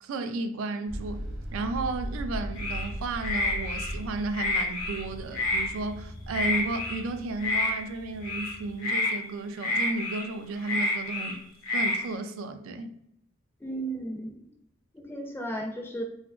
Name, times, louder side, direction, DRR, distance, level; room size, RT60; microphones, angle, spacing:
voice 1, 0.0-1.3 1.5-11.4 11.7-12.9, right 3 dB, 75° right, 0.3 m, -33 dB
sound 1, 0.9-8.8, equal, 55° right, 0.7 m, -39 dB
sound 2, 2.5-2.9 3.2-3.9 4.3-5.0 5.3-5.7 6.3-7.0 7.4-7.7 8.2-8.5 8.8-9.1 9.6-10.2 10.6-11.3 11.6-12.0, left 2 dB, 75° left, 0.9 m, -28 dB
voice 2, 13.6-14.4 14.9-16.0, right 1 dB, 10° left, 0.4 m, -34 dB
2.7 x 2.4 x 2.3 m
head